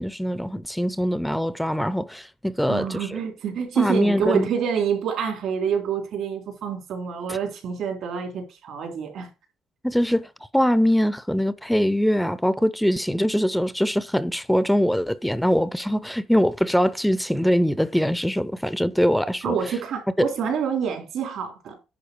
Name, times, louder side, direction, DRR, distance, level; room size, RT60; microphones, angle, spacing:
voice 1, 0.0-3.2 3.8-4.5 7.3-7.4 9.8-19.8 20.2-20.3, equal, 5° left, 0.6 m, -23 dB
voice 2, 2.7-9.3 19.4-21.8, right 7 dB, 75° right, 3.5 m, -27 dB
10.5 x 3.9 x 6.9 m
cardioid pair, 90°, 0 cm